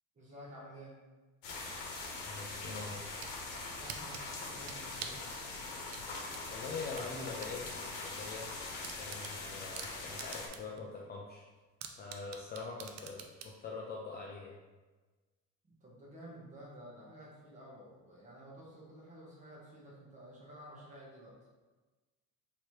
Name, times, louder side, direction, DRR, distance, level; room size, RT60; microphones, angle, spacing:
voice 1, 0.1-1.0 3.7-5.3 15.6-21.4, equal, 20° right, -5 dB, 1.0 m, -52 dB
sound 1, 1.4-10.5, left 3 dB, 80° left, 1.0 m, -42 dB
voice 2, 2.2-3.0 6.5-8.5 9.0-11.4 12.0-14.6, left 4 dB, 30° left, -3 dB, 0.4 m, -43 dB
sound 2, 3.1-3.4 3.9-5.3 5.9-7.6 7.9-8.0 8.4-8.5 8.8-10.8 11.1-11.2 11.8-13.6, right 8 dB, 55° right, 0.4 m, -46 dB
3.2 x 2.9 x 4.5 m, 1.2 s
cardioid pair, 170°, 33 cm